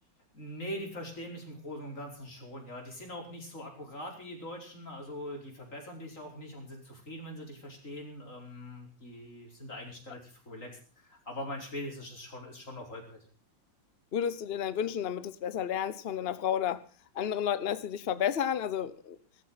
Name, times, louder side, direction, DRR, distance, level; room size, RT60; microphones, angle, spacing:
voice 1, 0.3-10.7 11.0-13.2, left 1 dB, 35° left, 1 dB, 5.2 m, -42 dB
voice 2, 14.1-16.8 17.1-19.2, left 9 dB, 70° left, 15 dB, 0.5 m, -31 dB
18.0 x 13.5 x 5.7 m, 0.39 s
omnidirectional pair, 2.3 m